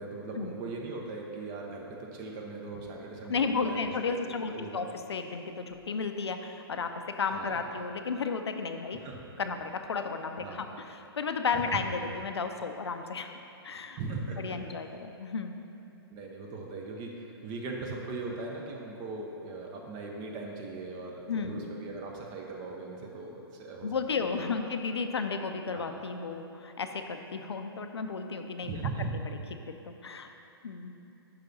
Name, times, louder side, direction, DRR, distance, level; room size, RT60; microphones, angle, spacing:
voice 1, 0.0-4.9 7.3-7.7 9.0-9.2 10.4-10.7 11.5-11.8 14.0-14.6 16.1-24.7 25.7-25.9 28.6-29.1, right 3 dB, 30° right, 0 dB, 0.6 m, -39 dB
voice 2, 3.3-6.9 7.2-9.0 9.4-13.3 13.6-14.0 14.4-15.6 21.3-21.7 23.8-28.8 29.6-30.3 30.6-30.9, left 5 dB, 80° left, 7 dB, 0.4 m, -33 dB
5.7 x 4.8 x 3.9 m, 2.8 s
hypercardioid pair, 120°, 13 cm